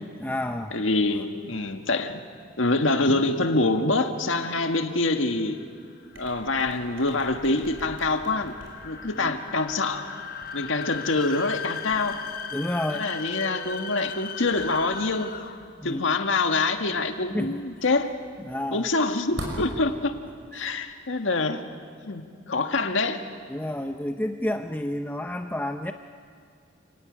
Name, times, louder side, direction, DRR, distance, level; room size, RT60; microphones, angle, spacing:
voice 1, 0.2-0.8 9.1-9.3 12.5-13.1 15.8-16.2 17.3-17.6 18.5-18.9 20.5-20.7 23.5-25.9, left 1 dB, 10° left, 5 dB, 0.6 m, -30 dB
voice 2, 0.7-2.2 2.6-5.6 6.2-8.5 8.8-10.1 10.5-12.2 12.9-15.4 15.8-18.1 18.7-20.2 20.5-21.6 22.0-23.2, left 3 dB, 85° left, 6 dB, 1.7 m, -25 dB
sound 1, 5.2-15.8, left 6 dB, 50° left, 1.1 m, -38 dB
sound 2, 6.1-20.9, right 1 dB, 80° right, 5.9 m, -46 dB
sound 3, 8.8-10.0 12.2-13.8, right 2 dB, 40° right, 3.6 m, -48 dB
29.0 x 15.5 x 9.8 m, 2.3 s
head